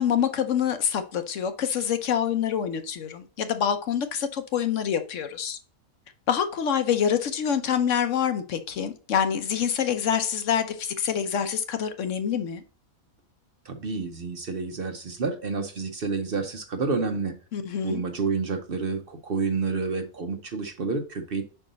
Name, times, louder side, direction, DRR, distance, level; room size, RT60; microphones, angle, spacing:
voice 1, 0.0-5.6 6.3-12.6 17.5-18.0, left 8 dB, 65° left, 1.0 m, -26 dB
voice 2, 13.6-17.4 17.8-21.4, right 4 dB, 50° right, 0.8 m, -29 dB
5.3 x 4.5 x 4.0 m
omnidirectional pair, 1.5 m